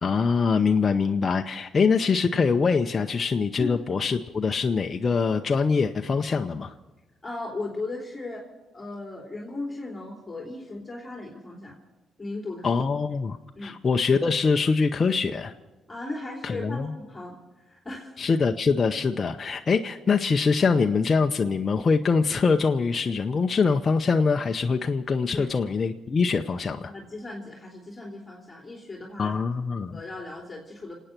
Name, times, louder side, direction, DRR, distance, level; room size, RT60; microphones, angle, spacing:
voice 1, 0.0-6.7 12.6-15.5 16.4-16.9 18.2-26.9 29.2-30.0, left 5 dB, 35° left, 5 dB, 0.7 m, -24 dB
voice 2, 7.2-8.5 8.7-11.8 12.2-12.7 13.5-13.8 15.9-17.4 17.7-18.1 25.3-25.5 26.9-29.4 29.9-30.9, left 2 dB, 20° left, -1 dB, 3.1 m, -37 dB
27.0 x 9.1 x 5.9 m, 1.1 s
cardioid pair, 90°, 0 cm